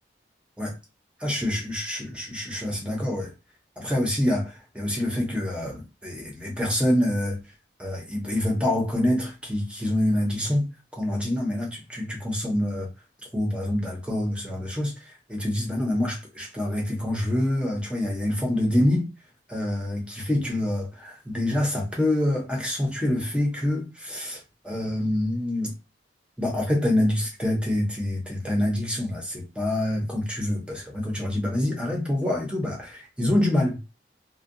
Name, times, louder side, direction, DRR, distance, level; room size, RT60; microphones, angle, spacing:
voice 1, 1.2-3.3 3.8-7.4 7.8-12.9 13.3-19.1 19.5-25.7 26.4-33.9, left 1 dB, 5° right, 0.7 m, -26 dB
2.6 x 2.1 x 2.5 m
head